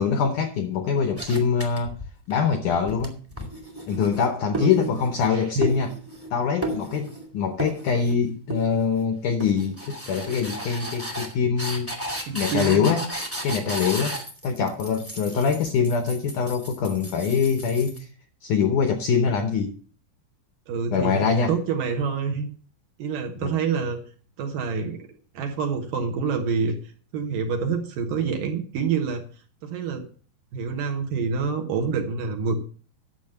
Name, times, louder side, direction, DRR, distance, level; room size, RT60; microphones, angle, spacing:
voice 1, 0.0-2.0 2.3-3.2 3.9-5.9 6.3-11.9 12.3-13.0 13.4-14.2 14.4-18.1 18.4-19.8 20.9-21.5 23.4-23.5, left 6 dB, 80° left, 1.8 m, -24 dB
sound 1, 1.2-2.3 2.7-5.3 5.6-6.3 6.6-7.3 7.6-8.2 8.5-9.0 9.4-18.0, right 1 dB, 10° right, 0.8 m, -34 dB
voice 2, 4.5-5.0 5.3-5.7 12.3-12.9 15.3-15.5 20.7-22.5 23.0-24.0 24.4-25.0 25.3-29.2 29.6-30.0 30.5-32.6, right 5 dB, 65° right, 2.5 m, -27 dB
11.0 x 7.2 x 6.6 m
omnidirectional pair, 4.8 m